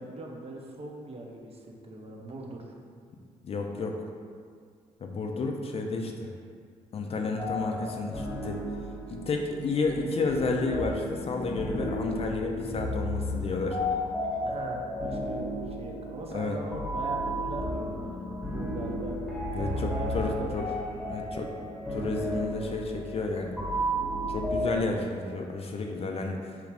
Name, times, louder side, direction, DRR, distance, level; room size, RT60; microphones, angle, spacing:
voice 1, 0.0-2.7 14.4-19.2 19.7-20.7, right 2 dB, 40° right, 0 dB, 0.6 m, -40 dB
voice 2, 3.4-4.0 5.0-6.3 6.9-8.6 9.1-13.8 16.3-16.6 19.5-20.7 21.1-21.5 21.9-23.6 24.3-26.4, left 3 dB, 40° left, 2 dB, 0.4 m, -31 dB
sound 1, 7.4-24.8, equal, ahead, 1.1 m, -33 dB
3.0 x 2.4 x 3.3 m, 2.1 s
hypercardioid pair, 50°, 16 cm